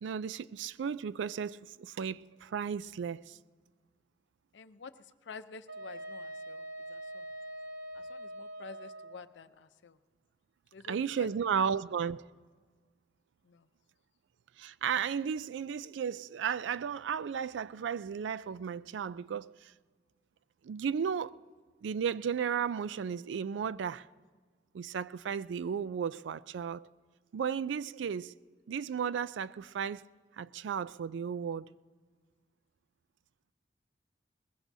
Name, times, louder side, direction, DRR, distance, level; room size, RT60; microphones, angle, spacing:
voice 1, 0.0-3.4 10.9-12.2 14.6-19.7 20.6-21.3 21.8-24.1 24.7-26.9 27.3-28.3 28.7-30.0 30.4-31.7, right 7 dB, 85° right, 0.3 m, -34 dB
voice 2, 4.5-4.9 5.2-6.6 6.9-7.3 7.9-10.0 10.7-11.3 13.4-13.7, left 4 dB, 80° left, 0.6 m, -49 dB
Wind instrument woodwind instrument, 5.7-9.2, right 1 dB, 65° right, 1.0 m, -43 dB
22.0 x 20.0 x 2.7 m
head